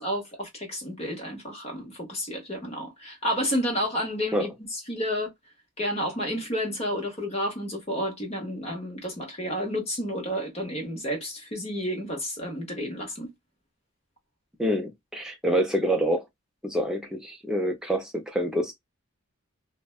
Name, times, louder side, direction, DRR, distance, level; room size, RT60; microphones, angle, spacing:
voice 1, 0.0-5.3 5.8-13.3, equal, 30° left, 0.9 m, -31 dB
voice 2, 14.6-16.2 16.6-18.7, equal, 5° right, 0.5 m, -26 dB
2.6 x 2.1 x 2.3 m
head